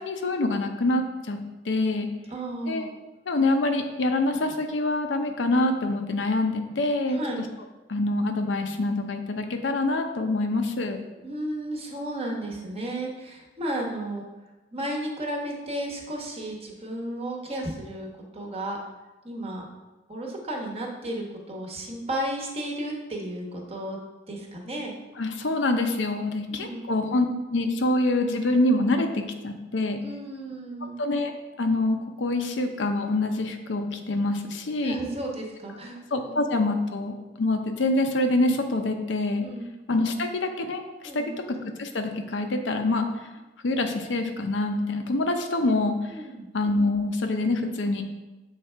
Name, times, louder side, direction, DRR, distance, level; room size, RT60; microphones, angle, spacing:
voice 1, 0.0-1.4 1.6-2.1 2.7-2.9 3.3-7.2 7.9-11.0 25.2-27.3 27.5-30.0 31.0-31.3 31.6-35.0 36.1-39.4 39.9-40.8 41.1-43.1 43.6-46.1 46.5-48.0, left 2 dB, 70° left, 5 dB, 0.6 m, -25 dB
voice 2, 2.3-2.9 7.1-7.4 11.2-14.3 14.7-18.8 19.2-19.6 20.1-24.0 24.3-24.9 26.5-26.8 30.0-30.9 34.8-36.4 39.4-39.7 41.0-41.3 46.1-46.5, right 1 dB, 35° right, 0 dB, 1.0 m, -33 dB
6.5 x 3.3 x 4.5 m, 1.1 s
head